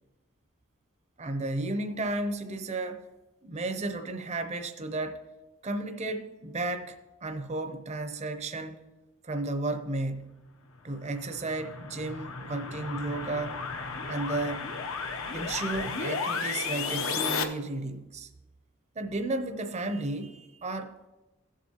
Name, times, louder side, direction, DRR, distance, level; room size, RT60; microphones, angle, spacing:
voice 1, 1.2-3.1 3.4-5.2 5.6-8.9 9.2-10.4 10.8-13.6 14.1-14.7 15.3-18.3 19.0-21.1, right 2 dB, 35° right, 0.6 m, -33 dB
sound 1, 10.9-17.4, left 5 dB, 80° left, 0.8 m, -34 dB
16.0 x 7.4 x 2.9 m
head